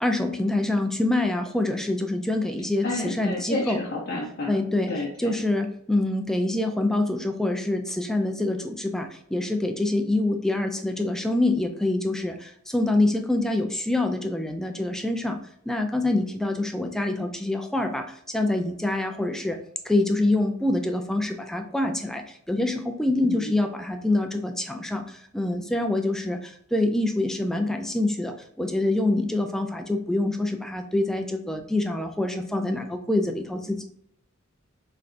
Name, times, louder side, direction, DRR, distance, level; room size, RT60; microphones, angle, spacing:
voice 1, 0.0-3.8 4.5-15.4 15.7-19.6 19.8-33.8, left 2 dB, ahead, 5 dB, 0.3 m, -26 dB
voice 2, 2.8-4.6 4.9-5.4 23.2-23.5, left 2 dB, 55° left, -4 dB, 0.6 m, -30 dB
3.8 x 3.2 x 2.4 m, 0.69 s
head